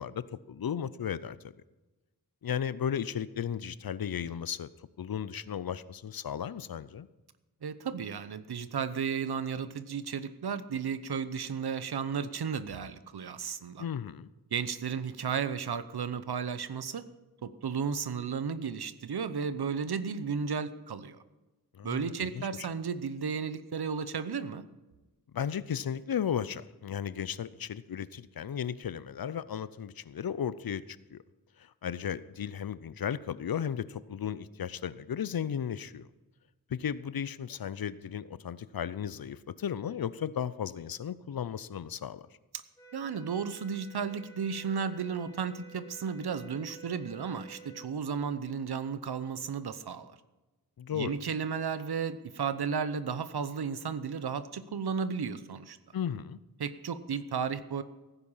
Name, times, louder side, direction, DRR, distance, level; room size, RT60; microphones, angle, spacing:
voice 1, 0.0-1.4 2.4-4.7 5.0-7.1 13.8-14.3 21.7-22.7 25.3-31.2 31.6-36.1 36.7-42.3 50.8-51.2 55.9-56.4, left 8 dB, 70° left, 17 dB, 0.6 m, -35 dB
voice 2, 7.6-13.8 14.5-17.0 17.4-21.2 21.8-24.6 42.9-50.2 50.9-55.8 56.6-57.8, right 6 dB, 85° right, 13 dB, 0.9 m, -34 dB
sound 1, 42.8-47.9, right 5 dB, 10° left, 1.9 m, -52 dB
16.5 x 9.9 x 5.6 m, 1.1 s
wide cardioid pair, 85°, 38 cm